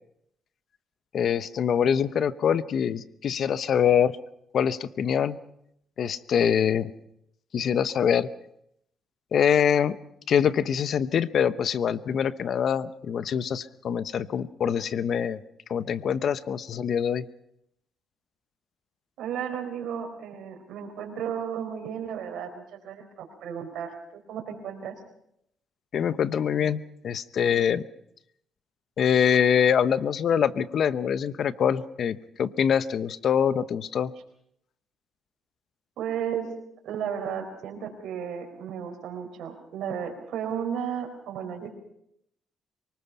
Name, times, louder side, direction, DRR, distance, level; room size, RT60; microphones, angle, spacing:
voice 1, 1.1-4.2 4.5-5.4 6.0-6.9 7.5-8.3 9.3-10.0 10.3-15.4 15.7-17.3 25.9-27.8 29.0-34.1, left 8 dB, 60° left, 15 dB, 0.8 m, -24 dB
voice 2, 19.2-24.9 36.0-36.5 36.8-41.7, right 8 dB, 80° right, 3 dB, 4.4 m, -34 dB
24.0 x 19.5 x 5.8 m, 0.75 s
cardioid pair, 90°, 0 cm